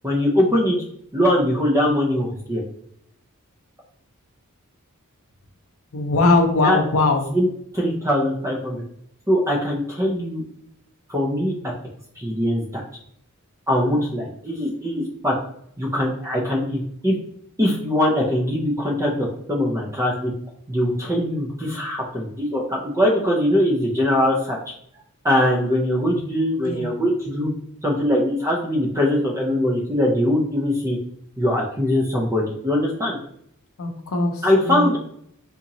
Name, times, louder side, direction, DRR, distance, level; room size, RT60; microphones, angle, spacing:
voice 1, 0.0-0.8 1.1-2.6 6.6-6.8 7.3-7.5 7.7-8.8 9.3-10.4 11.1-11.5 12.2-12.8 13.7-15.3 15.8-17.2 17.6-20.3 20.7-24.6 25.2-27.5 27.8-31.0 31.4-33.2 34.4-35.0, left 1 dB, 15° right, -2 dB, 0.5 m, -21 dB
voice 2, 5.9-7.3 26.6-26.9 33.8-34.9, left 3 dB, 65° left, 4 dB, 0.6 m, -20 dB
3.8 x 2.9 x 2.6 m, 0.69 s
head